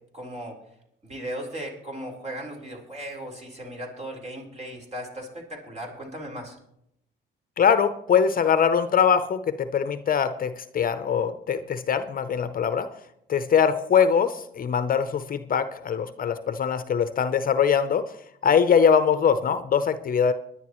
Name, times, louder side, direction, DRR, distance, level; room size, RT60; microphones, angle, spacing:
voice 1, 0.1-0.6 1.0-6.6, right 1 dB, 35° right, 1 dB, 4.0 m, -37 dB
voice 2, 7.6-12.9 13.3-18.1 18.4-20.3, left 7 dB, 45° left, 12 dB, 0.7 m, -22 dB
22.5 x 10.5 x 3.1 m, 0.78 s
cardioid pair, 90°, 20 cm